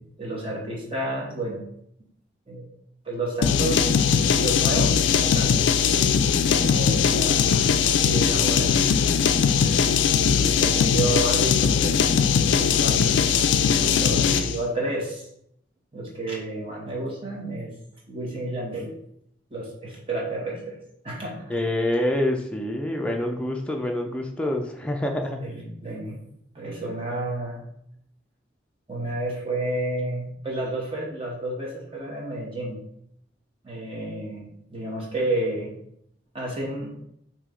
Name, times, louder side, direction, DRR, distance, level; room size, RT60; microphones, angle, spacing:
voice 1, 0.0-1.6 2.5-2.7 3.0-5.7 6.5-9.2 9.6-9.8 10.3-12.0 12.5-15.3 15.9-17.7 18.1-18.9 19.5-20.8 21.0-21.5 25.4-26.2 26.5-27.6 28.9-32.8 33.6-35.7 36.3-36.9, right 2 dB, 30° right, -3 dB, 1.0 m, -31 dB
sound 1, 3.4-14.6, left 7 dB, 75° left, 0.3 m, -20 dB
voice 2, 21.5-25.4, left 1 dB, 5° left, 1 dB, 0.5 m, -26 dB
5.0 x 2.9 x 3.7 m, 0.74 s
head